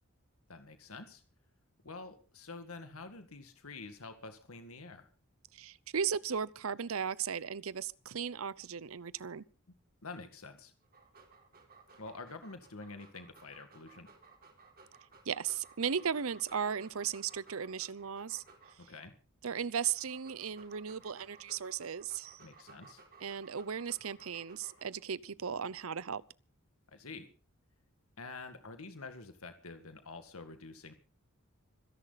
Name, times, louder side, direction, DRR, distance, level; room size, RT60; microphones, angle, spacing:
voice 1, 0.5-1.2 1.8-5.1 10.0-10.7 12.0-14.1 18.9-19.1 22.4-23.0 26.9-27.3 28.2-30.9, left 3 dB, 90° left, 2.0 m, -47 dB
voice 2, 5.6-9.4 15.3-18.4 19.4-22.4 23.2-26.2, right 7 dB, 75° right, 0.7 m, -36 dB
Dog, 10.8-19.0 19.6-25.0, right 4 dB, 45° right, 4.2 m, -59 dB
25.5 x 11.0 x 4.1 m
head